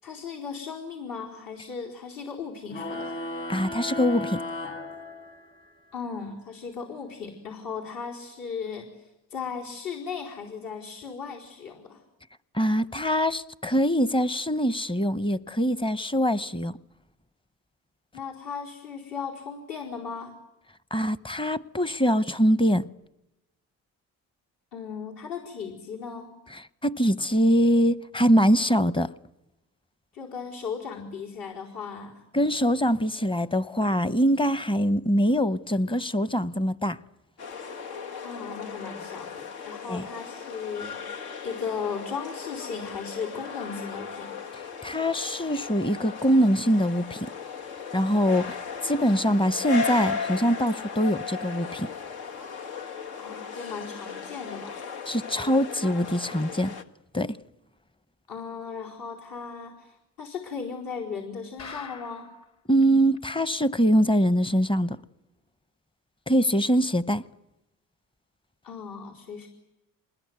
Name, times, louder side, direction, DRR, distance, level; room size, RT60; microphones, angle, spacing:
voice 1, 0.0-3.2 5.9-12.0 18.1-20.3 24.7-26.3 30.1-32.2 38.2-44.4 53.2-55.0 58.3-62.3 68.6-69.5, left 6 dB, 65° left, 4.6 m, -37 dB
sound 1, 2.7-5.7, left 1 dB, 35° left, 1.9 m, -35 dB
voice 2, 3.5-4.4 12.5-16.8 20.9-22.8 26.8-29.1 32.3-37.0 39.9-40.0 44.8-47.3 47.9-48.6 48.8-51.9 55.1-56.7 57.1-57.4 62.7-65.0 66.3-67.2, equal, 15° left, 0.9 m, -23 dB
sound 2, 37.4-56.8, left 5 dB, 80° left, 1.7 m, -37 dB
Bomb kl, 61.6-62.4 62.8-62.9 63.2-63.3 63.7-63.8, left 5 dB, 50° left, 3.6 m, -42 dB
27.5 x 21.0 x 9.5 m
supercardioid pair, 80°, 37 cm